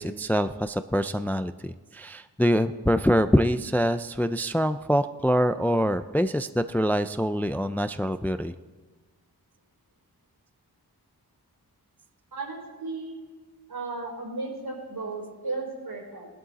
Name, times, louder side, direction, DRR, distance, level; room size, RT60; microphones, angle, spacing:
voice 1, 0.0-8.5, equal, 5° left, 11 dB, 0.3 m, -25 dB
voice 2, 12.3-13.1 13.7-16.3, right 3 dB, 75° right, -1 dB, 5.0 m, -35 dB
18.0 x 11.5 x 4.0 m, 1.4 s
wide cardioid pair, 85°, 38 cm